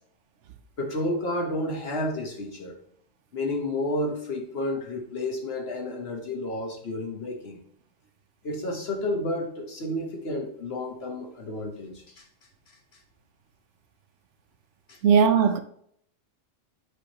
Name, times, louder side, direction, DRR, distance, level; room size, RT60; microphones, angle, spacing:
voice 1, 0.8-2.8 3.3-7.6 8.4-12.2 14.9-15.0, left 1 dB, 55° left, 1.4 m, -31 dB
voice 2, 15.0-15.6, right 6 dB, 70° right, 0.9 m, -18 dB
8.0 x 4.9 x 2.9 m
omnidirectional pair, 1.3 m